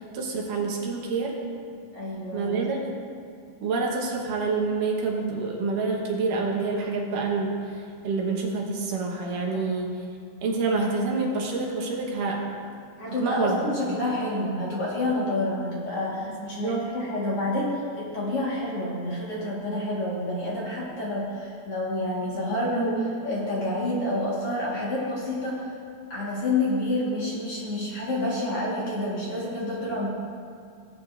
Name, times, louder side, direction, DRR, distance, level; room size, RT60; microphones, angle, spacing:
voice 1, 0.0-1.4 2.3-2.8 3.6-7.6 8.0-9.9 10.4-12.4 13.2-14.0 16.3-16.4 16.6-16.9, right 4 dB, 70° right, -1 dB, 2.6 m, -27 dB
voice 2, 1.9-2.6 13.0-25.6 26.1-30.1, left 1 dB, 50° left, -7 dB, 2.2 m, -28 dB
18.0 x 8.6 x 2.5 m, 2.2 s
omnidirectional pair, 4.1 m